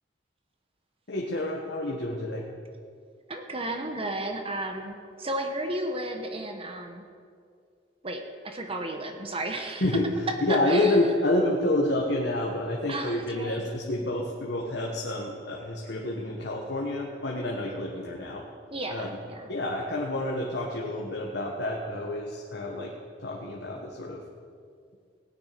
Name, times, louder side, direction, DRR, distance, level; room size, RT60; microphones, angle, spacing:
voice 1, 1.1-2.5 9.8-10.1 10.4-18.4 18.9-19.2 19.5-22.9 23.2-24.2, left 1 dB, 65° left, -1 dB, 1.5 m, -28 dB
voice 2, 3.3-7.0 8.0-9.9 10.3-11.0 12.9-13.7 18.7-19.5, right 1 dB, 30° right, 4 dB, 1.1 m, -33 dB
18.0 x 9.5 x 5.2 m, 2.2 s
head